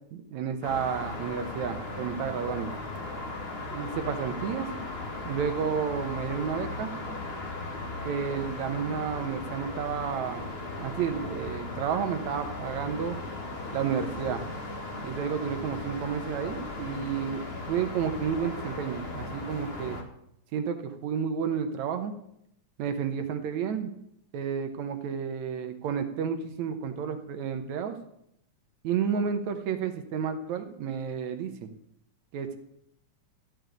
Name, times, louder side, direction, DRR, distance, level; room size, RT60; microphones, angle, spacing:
voice 1, 0.1-2.7 3.7-4.7 5.2-6.9 8.0-10.5 10.8-13.2 13.7-14.4 15.0-17.4 17.7-20.0 20.5-22.1 22.8-24.0 24.3-28.0 28.8-31.7 32.3-32.6, right 7 dB, 70° right, 8 dB, 2.3 m, -31 dB
sound 1, 0.6-20.0, left 2 dB, 30° left, 1.2 m, -37 dB
14.0 x 5.4 x 9.2 m, 0.75 s
omnidirectional pair, 3.5 m